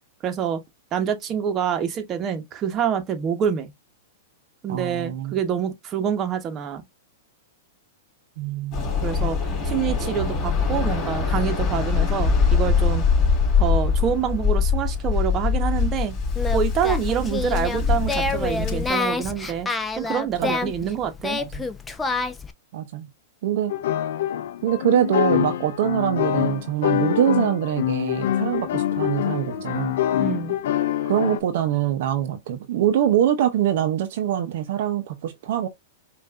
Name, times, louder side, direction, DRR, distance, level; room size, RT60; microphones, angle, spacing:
voice 1, 0.2-0.6 0.9-3.7 4.6-6.8 9.0-13.0 13.6-16.2 16.5-19.7 20.0-21.4 30.2-30.6, right 8 dB, 30° right, 1.0 m, -26 dB
voice 2, 4.7-5.3 8.4-8.9 20.4-20.5 21.4-21.7 22.7-23.1 23.4-23.7 24.6-30.0 31.1-35.7, right 10 dB, 60° right, 0.7 m, -24 dB
Waves surf, 8.7-18.9, left 5 dB, 35° left, 2.9 m, -23 dB
Singing, 16.3-22.5, left 3 dB, 10° left, 0.6 m, -28 dB
sound 1, 23.7-31.4, left 11 dB, 70° left, 0.5 m, -25 dB
5.3 x 2.5 x 2.4 m
hypercardioid pair, 115°, 0 cm